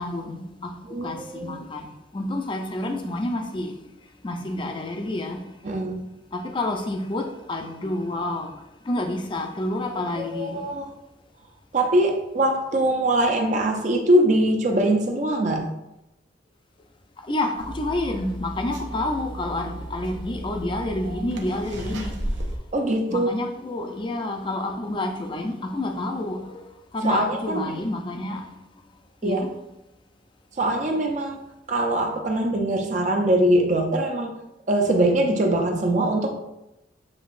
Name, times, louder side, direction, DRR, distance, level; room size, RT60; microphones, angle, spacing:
voice 1, 0.0-0.7 1.0-3.7 4.2-5.4 6.3-8.5 8.8-10.7 17.3-22.3 23.1-26.6 26.9-28.4 29.2-29.5, left 2 dB, 25° left, 0.5 m, -29 dB
voice 2, 0.9-1.6 5.6-6.0 10.3-10.9 11.7-15.7 22.7-23.3 27.0-27.8 29.2-29.4 30.6-31.4 31.7-34.3 34.7-36.3, right 1 dB, 40° right, 0.5 m, -22 dB
sound 1, 17.6-22.6, right 1 dB, 85° right, 0.7 m, -34 dB
7.2 x 2.9 x 2.5 m
head